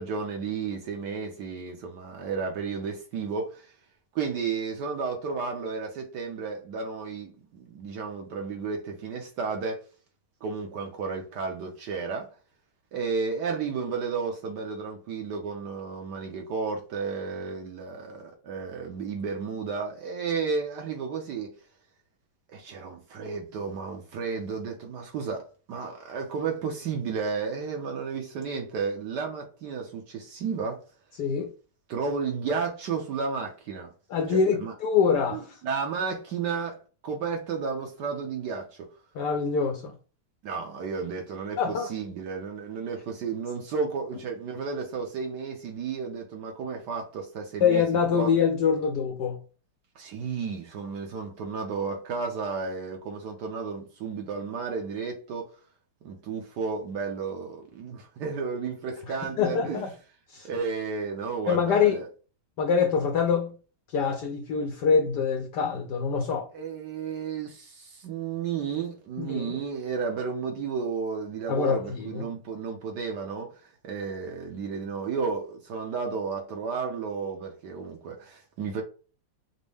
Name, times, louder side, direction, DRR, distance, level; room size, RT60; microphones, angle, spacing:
voice 1, 0.0-3.7 4.1-9.8 10.4-12.3 12.9-21.5 22.5-30.8 31.9-33.9 34.3-34.7 35.3-38.8 40.4-47.8 48.1-48.3 50.0-55.5 56.0-59.9 60.4-62.1 66.5-73.6 73.8-78.8, right 5 dB, 65° right, 1.1 m, -32 dB
voice 2, 31.2-31.5 34.1-35.5 39.1-39.9 41.6-41.9 47.6-49.4 59.1-59.9 60.3-60.5 61.5-62.0 62.6-63.6 63.9-66.5 69.2-69.6 71.5-72.3, left 6 dB, 75° left, 1.0 m, -25 dB
5.2 x 2.1 x 3.3 m
omnidirectional pair, 2.3 m